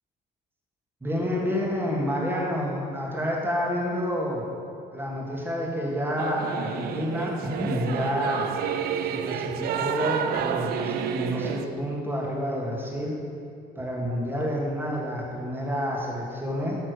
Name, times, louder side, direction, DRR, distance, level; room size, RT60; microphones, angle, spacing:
voice 1, 1.0-4.4 4.9-8.5 9.0-13.2 13.7-16.8, equal, 10° right, -3 dB, 1.6 m, -29 dB
Singing / Musical instrument, 6.2-11.7, right 8 dB, 65° right, 0.4 m, -30 dB
9.1 x 3.4 x 6.5 m, 2.4 s
cardioid pair, 110°, 17 cm